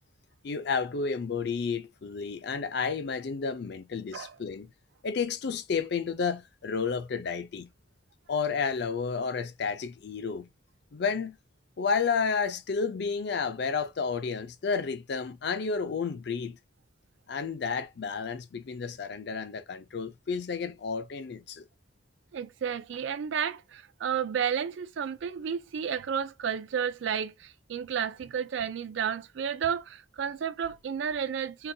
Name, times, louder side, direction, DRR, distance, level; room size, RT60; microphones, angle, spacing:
voice 1, 0.4-4.7 5.0-7.7 8.3-10.5 10.9-11.4 11.8-16.6 17.3-21.7, left 5 dB, 60° left, 0.4 m, -31 dB
voice 2, 22.3-31.7, right 7 dB, 70° right, 0.4 m, -32 dB
3.8 x 2.3 x 2.7 m
head